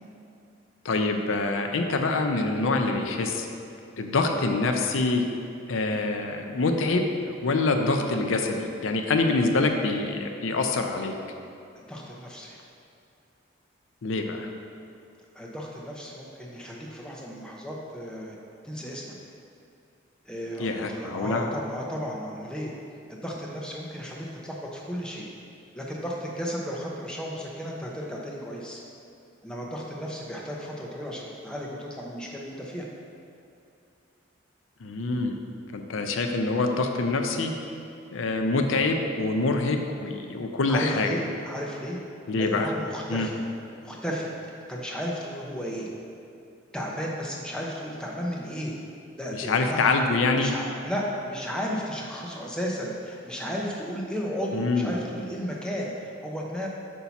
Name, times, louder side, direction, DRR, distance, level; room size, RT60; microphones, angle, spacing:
voice 1, 0.8-3.5 4.0-5.2 5.7-11.1 14.0-14.5 20.6-21.5 34.8-35.4 35.7-37.5 38.1-41.2 42.3-42.7 43.1-43.3 49.3-50.5 54.5-54.9, left 3 dB, 80° left, 4 dB, 0.5 m, -25 dB
voice 2, 11.8-12.6 15.3-18.4 18.6-19.1 20.2-22.7 23.1-25.3 25.7-28.8 29.4-32.8 40.7-42.0 42.4-43.4 43.8-44.3 44.7-45.9 46.7-48.8 49.2-49.9 50.4-56.7, equal, 5° left, -3 dB, 0.7 m, -34 dB
8.2 x 2.8 x 5.8 m, 2.6 s
head